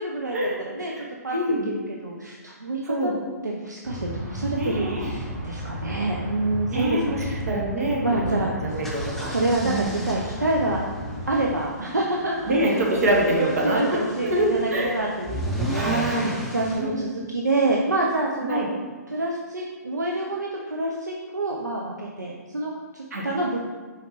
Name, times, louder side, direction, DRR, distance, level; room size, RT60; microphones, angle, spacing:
voice 1, 0.0-1.6 2.0-3.1 3.4-7.4 8.0-8.5 9.2-10.8 11.3-13.0 13.3-18.6 19.1-23.6, right 2 dB, 85° right, -2 dB, 0.4 m, -27 dB
voice 2, 0.9-1.7 2.8-3.1 4.5-5.1 6.7-8.4 8.6-9.3 9.6-10.0 12.5-14.0 14.2-14.9 15.7-16.3 16.7-17.0 18.4-18.7 23.1-23.2, right 1 dB, 60° right, -2 dB, 1.0 m, -25 dB
sound 1, 3.8-11.4, equal, 40° right, 1.4 m, -34 dB
sound 2, 8.7-16.8, right 1 dB, ahead, 0.4 m, -35 dB
4.5 x 3.5 x 3.0 m, 1.4 s
figure-of-eight pair, 120°, 9 cm